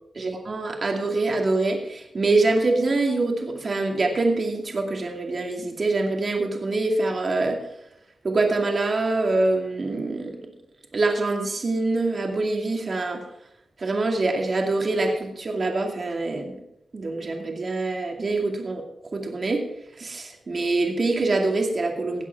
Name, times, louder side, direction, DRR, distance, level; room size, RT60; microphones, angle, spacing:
voice 1, 0.2-7.6 8.2-10.4 10.9-13.2 13.8-16.6 16.9-18.8 19.1-19.6 20.0-22.3, right 2 dB, 45° right, 2 dB, 2.4 m, -24 dB
17.0 x 8.3 x 4.7 m, 0.80 s
wide cardioid pair, 95°, 0 cm